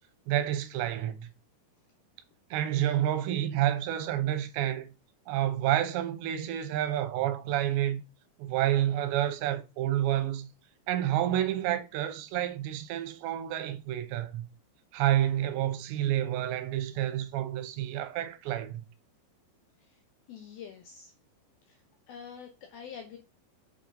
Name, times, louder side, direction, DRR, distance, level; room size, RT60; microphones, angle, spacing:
voice 1, 0.3-1.3 2.5-4.9 5.3-8.0 8.4-10.5 10.9-14.4 14.9-18.8, right 12 dB, 80° right, 2.9 m, -29 dB
voice 2, 20.3-21.1 21.6-21.8 22.1-23.2, left 7 dB, 75° left, 2.2 m, -46 dB
7.6 x 4.4 x 3.7 m
omnidirectional pair, 5.3 m